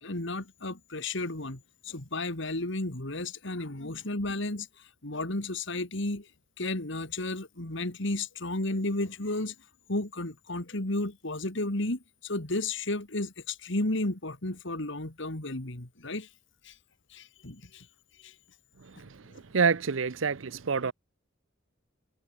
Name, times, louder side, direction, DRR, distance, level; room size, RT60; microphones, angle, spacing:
voice 1, 0.0-6.3 6.6-9.5 9.9-16.3 16.6-16.7 17.1-17.9 18.2-18.3 19.3-19.4, left 2 dB, 65° left, 2.8 m, -33 dB
voice 2, 19.5-20.9, right 5 dB, 70° right, 0.7 m, -26 dB
head